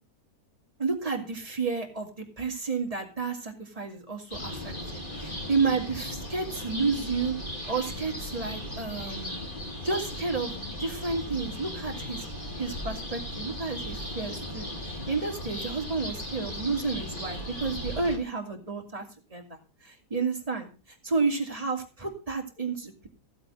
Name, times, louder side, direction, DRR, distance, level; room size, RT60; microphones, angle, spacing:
voice 1, 0.8-7.3 7.7-9.4 9.8-10.5 10.8-12.3 12.5-19.0 19.3-20.7 21.0-23.1, right 4 dB, 20° right, 2 dB, 2.9 m, -31 dB
sound 1, 4.3-18.2, left 1 dB, 30° left, 4.1 m, -37 dB
15.0 x 8.0 x 5.6 m, 0.33 s
omnidirectional pair, 1.7 m